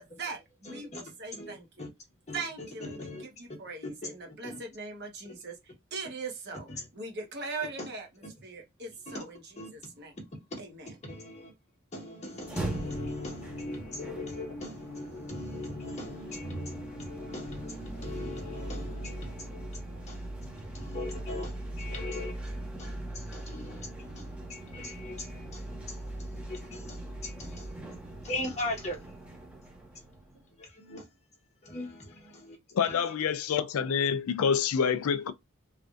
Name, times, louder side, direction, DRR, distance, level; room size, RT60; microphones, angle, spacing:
voice 1, 0.0-1.8 2.3-10.2 10.6-11.0, right 4 dB, 50° right, 1.1 m, -41 dB
voice 2, 0.6-1.0 1.4-1.9 2.3-3.2 4.0-4.1 4.4-4.6 7.8-7.9 9.1-9.2 9.6-9.7 11.0-11.5 11.9-25.6 26.2-27.7 28.2-29.0 30.6-31.0 31.6-32.6 32.8-33.0, left 2 dB, 30° left, 1.2 m, -40 dB
sound 1, 12.3-30.5, right 1 dB, 5° right, 0.9 m, -41 dB
voice 3, 32.7-35.3, left 7 dB, 80° left, 0.4 m, -27 dB
3.3 x 2.5 x 2.4 m
head